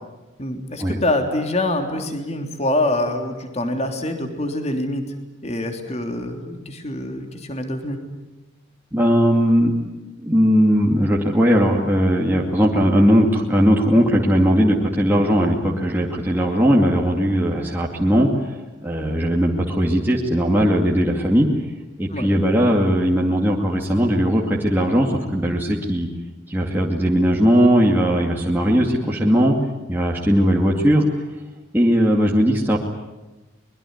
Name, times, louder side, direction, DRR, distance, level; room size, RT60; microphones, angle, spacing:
voice 1, 0.4-5.0 5.4-8.0 15.1-15.2 22.1-22.3, left 1 dB, 35° left, 5 dB, 3.2 m, -25 dB
voice 2, 8.9-9.7 10.2-21.5 22.0-26.1 26.5-29.6 29.9-31.0 31.7-32.8, equal, 10° right, -2 dB, 2.4 m, -18 dB
24.0 x 22.5 x 9.5 m, 1.1 s
head